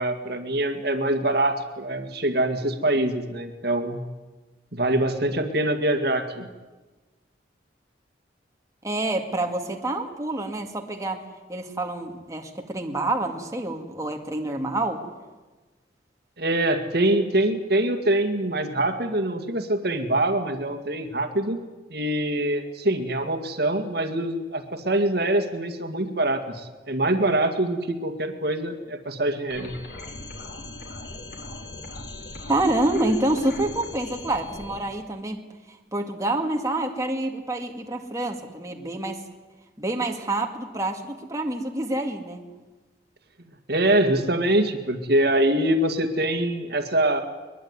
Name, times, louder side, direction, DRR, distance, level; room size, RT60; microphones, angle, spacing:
voice 1, 0.0-4.0 4.7-6.5 16.4-21.6 21.9-29.7 43.7-47.2, right 1 dB, 55° right, 7 dB, 2.1 m, -24 dB
voice 2, 8.8-11.2 11.5-15.0 32.5-35.4 35.9-39.2 39.8-42.4, right 2 dB, 15° right, 2 dB, 2.1 m, -27 dB
sound 1, 29.5-34.8, left 2 dB, 60° left, 4.6 m, -39 dB
22.0 x 21.5 x 9.7 m, 1.2 s
head